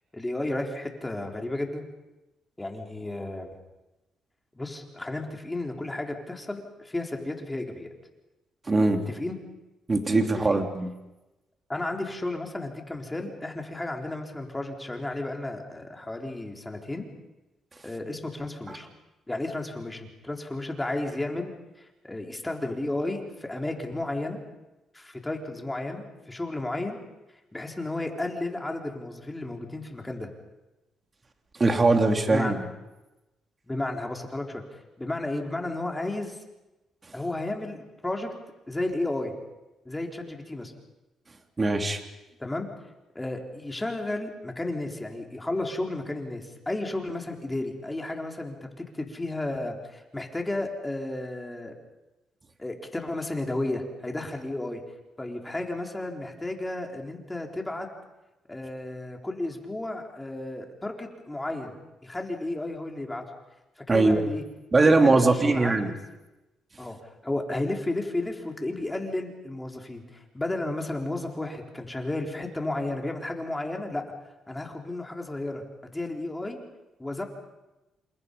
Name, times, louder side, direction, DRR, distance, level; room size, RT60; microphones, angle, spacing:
voice 1, 0.1-1.8 2.6-3.5 4.5-7.9 9.1-9.4 10.5-10.6 11.7-17.1 17.8-18.9 19.3-24.4 24.9-27.0 27.5-30.3 32.3-32.6 33.7-34.6 35.0-36.4 37.1-38.3 38.7-39.3 39.8-40.7 42.4-42.7 43.1-51.7 52.6-54.8 55.2-57.9 58.5-61.7 62.0-63.2 63.9-64.4 64.8-66.0 66.8-74.1 74.5-75.6 75.9-76.6 77.0-77.2, left 2 dB, 15° left, 2 dB, 4.2 m, -33 dB
voice 2, 8.7-9.0 9.9-10.9 31.6-32.6 41.6-42.0 63.9-64.2 64.7-65.9, right 3 dB, 30° right, 4 dB, 3.1 m, -21 dB
29.0 x 27.5 x 5.5 m, 1.0 s
cardioid pair, 90°, 0 cm